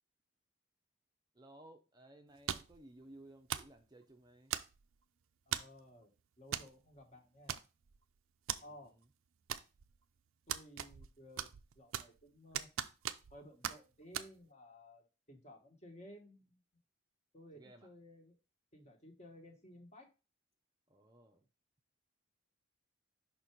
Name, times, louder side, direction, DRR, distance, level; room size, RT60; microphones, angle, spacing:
voice 1, 1.3-4.6 8.6-9.1 17.5-17.9 20.9-21.5, right 1 dB, 20° right, 0.6 m, -58 dB
sound 1, 2.5-2.8 3.5-3.8 4.5-4.9 5.5-5.8 6.5-6.7 7.0-7.1 7.5-8.0 8.5-8.6 9.5-10.0 10.5-11.1 11.4-12.2 12.5-13.4 13.6-13.8 14.1-14.3, right 10 dB, 80° right, 0.5 m, -39 dB
voice 2, 5.5-6.1 6.4-7.6 8.6-8.9 10.5-11.5 11.8-12.7 13.3-16.6 17.3-18.4 18.7-20.1, equal, 30° left, 1.3 m, -56 dB
5.7 x 4.2 x 4.5 m
head